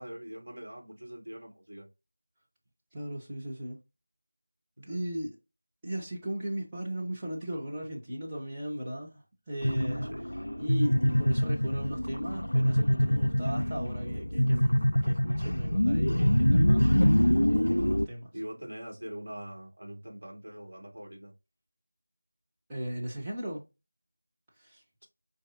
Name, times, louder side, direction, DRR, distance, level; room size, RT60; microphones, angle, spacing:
voice 1, 0.0-1.9 4.8-5.1 10.1-10.3 18.3-21.3, equal, 55° right, 1.9 m, -43 dB
voice 2, 2.9-3.8 4.9-5.4 5.8-10.1 10.6-18.3 22.7-23.6 24.6-24.8, right 1 dB, 5° right, 1.0 m, -37 dB
sound 1, 9.6-18.1, equal, 75° left, 0.4 m, -25 dB
5.0 x 3.2 x 2.7 m
figure-of-eight pair, 170°, 0 cm